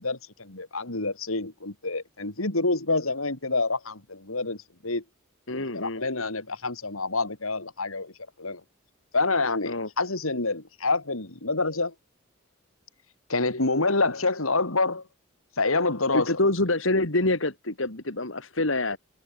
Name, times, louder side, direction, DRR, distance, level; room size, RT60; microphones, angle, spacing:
voice 1, 0.0-5.0 5.5-8.1 8.4-8.6 9.1-11.9 13.3-15.0 15.6-16.4, left 3 dB, 85° left, 3.6 m, -27 dB
voice 2, 5.5-6.0 9.6-9.9 16.1-19.0, left 2 dB, 65° left, 2.9 m, -26 dB
head